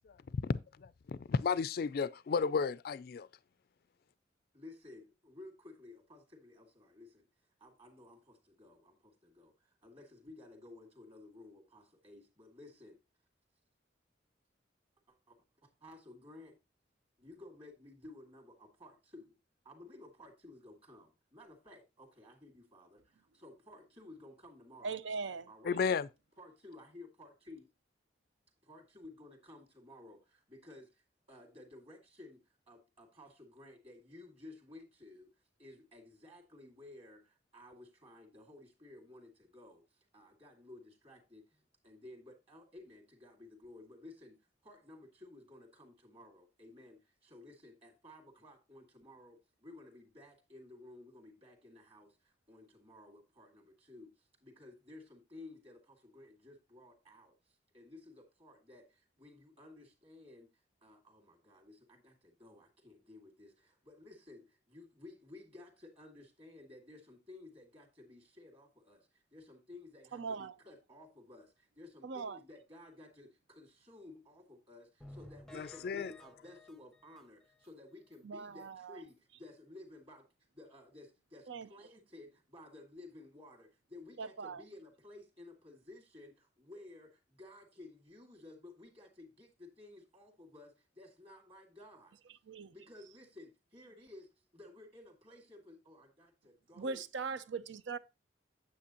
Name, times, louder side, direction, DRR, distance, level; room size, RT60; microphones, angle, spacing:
voice 1, 0.4-3.3 25.6-26.1 75.5-76.1, left 5 dB, 55° left, 0.3 m, -33 dB
voice 2, 4.5-13.0 15.1-16.6 17.2-19.4 19.6-25.0 25.5-25.8 26.4-27.7 28.6-80.3 80.5-92.2 92.7-97.0, left 2 dB, 30° right, 2.1 m, -55 dB
voice 3, 24.8-25.5 70.1-70.5 72.0-72.4 78.2-79.0 81.5-81.7 84.2-84.6 92.5-92.7 96.8-98.0, right 4 dB, 80° right, 0.6 m, -40 dB
sound 1, 75.0-77.7 78.1-78.2 78.6-78.7 79.1-79.2, left 1 dB, 5° left, 0.6 m, -55 dB
8.5 x 7.9 x 2.9 m
head